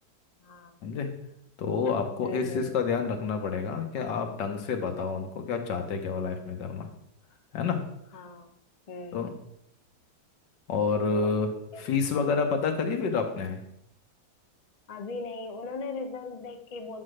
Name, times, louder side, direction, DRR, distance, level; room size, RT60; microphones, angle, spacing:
voice 1, 0.4-0.8 2.2-2.7 4.0-4.1 8.1-8.5 8.9-9.3 11.1-11.3 11.7-11.8 14.9-17.0, left 4 dB, 70° left, 5 dB, 0.3 m, -39 dB
voice 2, 1.6-6.9 7.5-7.8 9.1-9.3 10.7-11.5 11.8-13.6, left 5 dB, 90° left, 4 dB, 1.7 m, -28 dB
8.8 x 3.9 x 6.4 m, 0.77 s
omnidirectional pair, 1.9 m